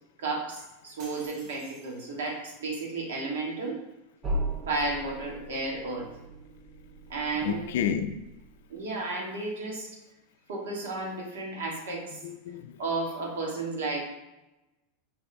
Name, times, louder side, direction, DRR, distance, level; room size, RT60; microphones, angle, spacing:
voice 1, 0.2-3.8 4.7-6.1 7.1-7.8 8.7-9.9 10.5-12.2 12.8-14.0, right 3 dB, 85° right, 1.2 m, -33 dB
sound 1, 1.0-2.5, right 2 dB, 55° right, 1.0 m, -51 dB
sound 2, 4.2-8.9, right 1 dB, 25° right, 0.7 m, -37 dB
voice 2, 7.3-8.2 12.2-12.8, left 8 dB, 75° left, 0.3 m, -31 dB
4.7 x 2.2 x 4.1 m
supercardioid pair, 125°, 0 cm